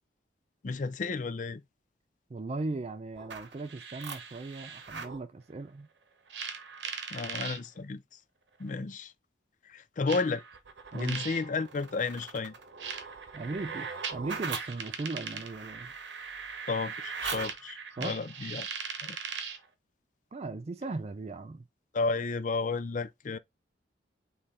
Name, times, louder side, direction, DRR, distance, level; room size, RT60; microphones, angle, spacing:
voice 1, 0.6-1.6 7.1-8.0 8.6-9.1 9.6-10.4 10.9-12.5 16.7-18.7 19.0-19.2 21.9-23.4, left 4 dB, 45° left, 0.4 m, -32 dB
voice 2, 2.3-5.9 10.9-11.2 13.3-15.9 18.0-18.2 20.3-21.7, right 3 dB, 35° right, 0.4 m, -38 dB
sound 1, 3.1-5.2 6.3-7.6 8.7-8.8 10.1-19.7, right 5 dB, 75° right, 0.9 m, -39 dB
3.8 x 3.2 x 4.1 m
head